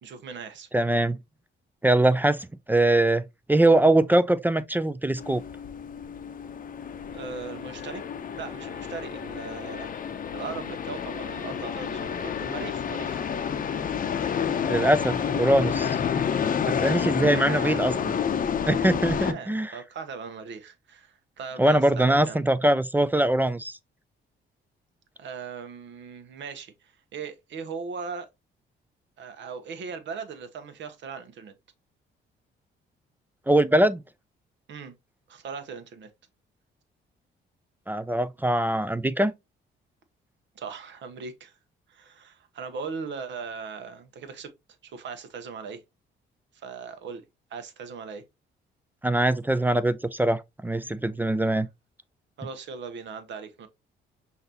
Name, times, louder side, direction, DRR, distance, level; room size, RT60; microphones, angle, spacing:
voice 1, 0.0-0.7 7.1-8.0 8.3-13.2 17.3-17.8 19.2-22.4 25.2-28.3 29.2-31.5 34.7-34.9 35.3-36.1 40.5-41.6 41.9-44.5 44.8-45.8 46.5-47.2 47.5-48.2 51.4-51.5 52.4-53.7, right 5 dB, 65° right, 1.0 m, -39 dB
voice 2, 0.7-1.2 1.8-5.4 14.7-16.0 16.7-17.9 18.7-19.7 21.6-23.7 33.5-34.0 37.9-39.3 49.0-51.7, right 1 dB, 10° right, 0.3 m, -22 dB
sound 1, 5.2-19.3, left 7 dB, 45° left, 0.6 m, -29 dB
5.7 x 2.7 x 2.8 m
cardioid pair, 90°, 20 cm